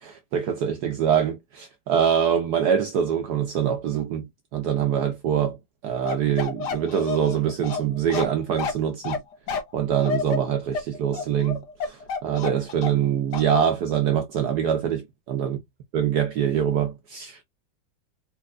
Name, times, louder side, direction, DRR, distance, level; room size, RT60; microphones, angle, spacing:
voice 1, 0.0-4.3 4.5-5.6 5.8-9.2 9.7-15.6 15.9-17.4, right 8 dB, 75° right, 0.9 m, -24 dB
Bark, 6.1-13.1 13.3-13.5, left 5 dB, 60° left, 1.4 m, -30 dB
4.3 x 2.6 x 2.4 m
omnidirectional pair, 2.3 m